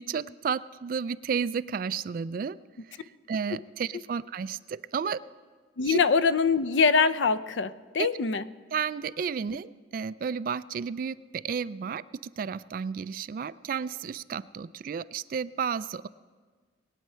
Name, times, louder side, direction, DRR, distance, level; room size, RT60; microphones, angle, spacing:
voice 1, 0.0-2.6 3.0-5.2 5.9-6.0 8.0-8.1 8.7-16.1, right 6 dB, 50° right, 17 dB, 0.3 m, -32 dB
voice 2, 5.8-8.4, left 5 dB, 80° left, 15 dB, 0.5 m, -23 dB
20.5 x 9.1 x 5.6 m, 1.5 s
head